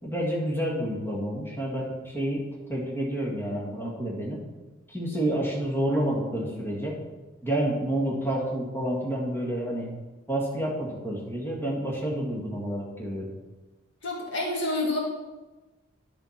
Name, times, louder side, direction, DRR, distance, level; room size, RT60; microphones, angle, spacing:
voice 1, 0.0-4.4 4.9-7.0 7.4-9.9 10.3-13.3, right 1 dB, 10° left, -5 dB, 2.0 m, -29 dB
voice 2, 14.0-15.0, left 2 dB, 60° left, -1 dB, 2.0 m, -28 dB
10.5 x 5.1 x 5.8 m, 1.1 s
head